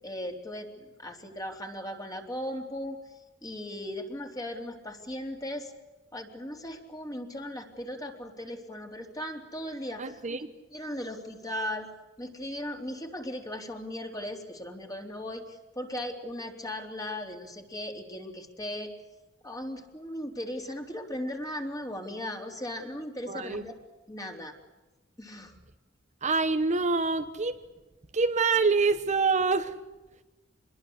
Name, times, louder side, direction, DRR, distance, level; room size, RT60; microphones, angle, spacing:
voice 1, 0.0-3.0 3.4-5.7 6.1-10.2 10.7-11.9 12.2-18.9 19.4-23.7 24.1-24.6 25.2-25.6, left 1 dB, 20° left, 3 dB, 3.6 m, -37 dB
voice 2, 10.0-10.5 23.3-23.6 26.2-27.6 28.1-29.8, right 4 dB, 35° right, 8 dB, 1.1 m, -26 dB
26.5 x 21.5 x 8.0 m, 1.1 s
head